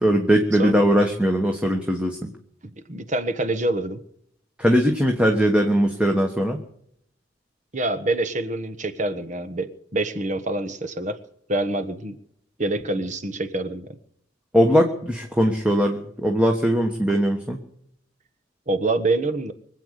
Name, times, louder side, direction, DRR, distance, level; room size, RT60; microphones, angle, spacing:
voice 1, 0.0-2.3 4.6-6.6 14.5-17.6, equal, 5° right, 2 dB, 1.4 m, -20 dB
voice 2, 2.9-4.0 7.7-11.2 11.5-12.2 12.6-13.9 18.7-19.5, right 2 dB, 40° right, 11 dB, 1.3 m, -26 dB
24.5 x 8.6 x 6.6 m, 0.70 s
head